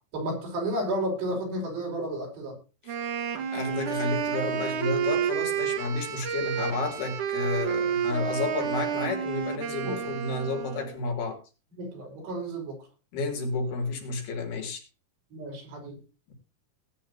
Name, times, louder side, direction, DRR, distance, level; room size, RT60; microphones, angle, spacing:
voice 1, 0.1-2.6 9.8-10.0 11.7-12.8 15.3-16.0, right 1 dB, 85° right, 7.5 m, -32 dB
Wind instrument woodwind instrument, 2.9-11.0, right 8 dB, 60° right, 2.6 m, -30 dB
voice 2, 3.5-11.4 13.1-14.8, left 3 dB, 70° left, 5.2 m, -31 dB
19.0 x 9.8 x 2.9 m
omnidirectional pair, 4.7 m